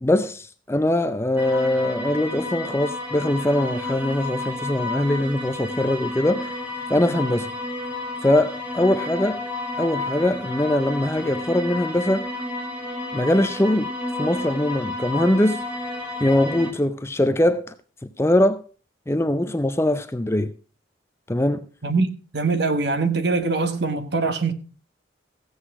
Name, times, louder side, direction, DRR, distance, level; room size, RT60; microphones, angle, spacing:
voice 1, 0.0-6.6 6.9-7.5 8.2-9.4 9.8-12.3 13.1-13.9 14.2-15.6 16.2-17.7 18.2-18.6 19.1-20.5 21.3-21.7, left 1 dB, 15° left, 0.5 m, -22 dB
sound 1, 1.4-16.7, left 2 dB, 10° right, 1.6 m, -31 dB
voice 2, 21.8-24.5, right 3 dB, 55° right, 1.2 m, -23 dB
15.0 x 8.0 x 4.7 m
head